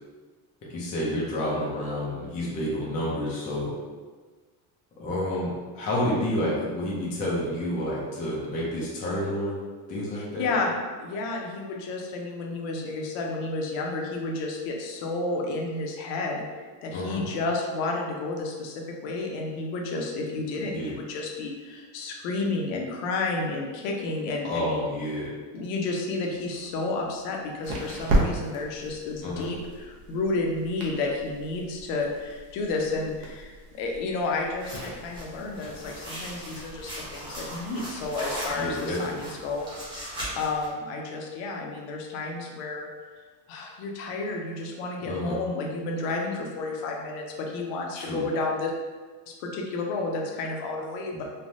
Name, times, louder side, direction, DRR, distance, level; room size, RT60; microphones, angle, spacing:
voice 1, 0.7-3.7 5.0-9.6 9.9-10.5 16.9-17.2 20.6-20.9 24.4-25.3 29.2-29.5 38.5-39.2 45.0-45.4 47.9-48.2 51.1-51.2, left 1 dB, 20° left, -6 dB, 0.3 m, -29 dB
voice 2, 10.1-10.7 11.0-24.8 25.5-39.7 40.0-42.9 43.5-48.7 49.3-51.2, left 3 dB, 65° left, 1 dB, 0.6 m, -31 dB
sound 1, 26.3-38.7, right 1 dB, 60° right, 0.8 m, -35 dB
sound 2, 34.6-40.7, equal, 10° right, 0.7 m, -38 dB
3.2 x 2.1 x 2.6 m, 1.4 s
cardioid pair, 160°, 43 cm